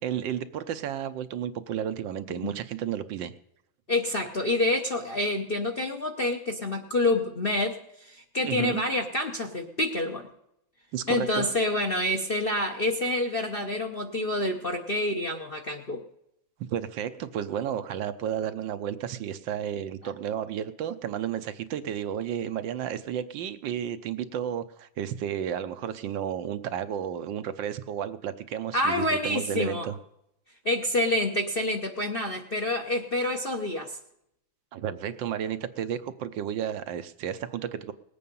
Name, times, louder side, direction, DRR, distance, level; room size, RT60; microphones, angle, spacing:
voice 1, 0.0-3.3 8.4-8.8 10.9-11.5 16.7-29.9 34.7-37.9, right 9 dB, 75° right, 11 dB, 1.4 m, -32 dB
voice 2, 3.9-10.3 11.1-16.0 28.7-29.9 30.6-34.0, left 1 dB, 40° left, 4 dB, 0.8 m, -27 dB
19.5 x 8.5 x 5.4 m, 0.78 s
omnidirectional pair, 2.2 m